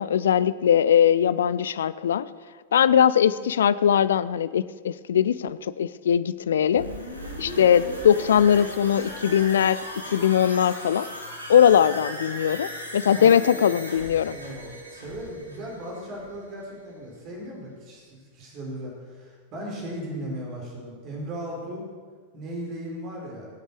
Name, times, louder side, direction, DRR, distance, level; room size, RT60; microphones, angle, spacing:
voice 1, 0.0-2.3 2.7-6.9 7.4-9.8 10.1-11.1 11.5-14.4, left 9 dB, 65° left, 17 dB, 0.5 m, -20 dB
sound 1, 6.7-16.5 16.8-16.9, equal, 90° left, 2.2 m, -37 dB
voice 2, 13.0-13.4 14.3-21.8 22.3-23.5, right 1 dB, 35° right, -2 dB, 5.2 m, -37 dB
22.0 x 8.8 x 6.4 m, 1.6 s
figure-of-eight pair, 90°, 0 cm